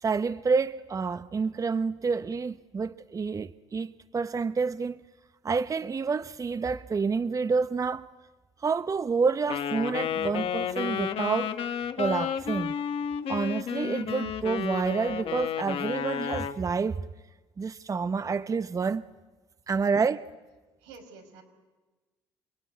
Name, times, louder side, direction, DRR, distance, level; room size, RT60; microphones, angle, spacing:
voice 1, 0.0-5.0 5.4-8.1 8.6-11.5 12.0-12.8 13.3-17.1 17.6-19.0 19.7-20.2, right 5 dB, 30° right, 0.9 m, -28 dB
Wind instrument woodwind instrument, 9.5-16.6, left 8 dB, 60° left, 1.9 m, -31 dB
voice 2, 20.8-21.4, right 4 dB, 90° right, 5.4 m, -49 dB
28.5 x 21.5 x 9.6 m
supercardioid pair, 70°, 11 cm